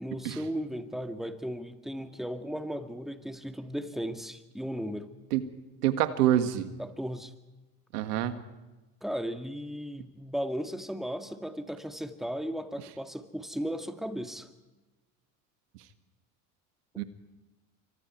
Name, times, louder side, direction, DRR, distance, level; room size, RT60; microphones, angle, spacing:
voice 1, 0.0-5.1 6.8-7.3 9.0-14.5, equal, ahead, 7 dB, 2.2 m, -36 dB
voice 2, 5.8-6.7 7.9-8.3 17.0-17.1, right 12 dB, 85° right, 10 dB, 1.9 m, -26 dB
28.5 x 24.5 x 4.6 m, 1.1 s
hypercardioid pair, 75°, 46 cm